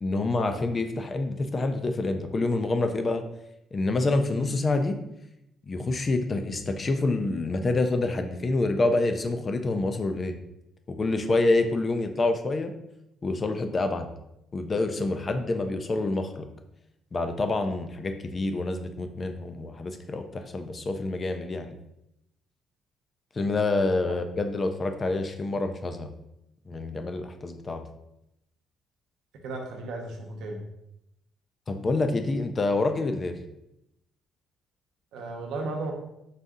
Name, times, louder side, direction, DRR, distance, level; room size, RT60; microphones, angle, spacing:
voice 1, 0.0-3.2 3.7-5.0 5.6-10.4 10.9-12.7 13.2-14.1 14.5-16.5 17.1-21.8 23.3-26.1 26.7-27.8 31.7-33.4, left 2 dB, 25° left, 7 dB, 0.3 m, -27 dB
voice 2, 29.4-30.6 35.1-35.9, right 2 dB, 75° right, 2 dB, 0.8 m, -34 dB
4.0 x 2.6 x 3.6 m, 0.82 s
cardioid pair, 165°, 0 cm